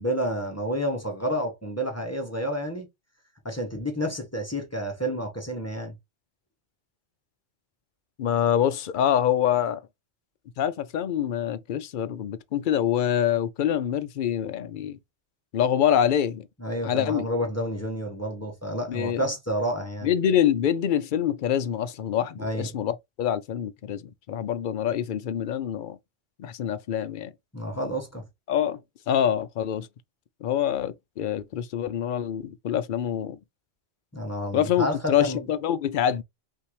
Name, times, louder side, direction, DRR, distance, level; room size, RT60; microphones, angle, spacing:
voice 1, 0.0-2.9 3.4-5.9 16.6-20.1 22.4-22.7 27.5-28.2 34.1-35.5, equal, 15° left, 1.2 m, -30 dB
voice 2, 8.2-9.8 10.6-15.0 15.5-16.5 16.8-17.3 18.9-19.2 20.0-26.0 26.4-27.3 28.5-28.8 29.1-29.9 30.4-33.4 34.5-36.2, left 10 dB, 60° left, 0.6 m, -25 dB
5.6 x 2.7 x 3.2 m
omnidirectional pair, 1.1 m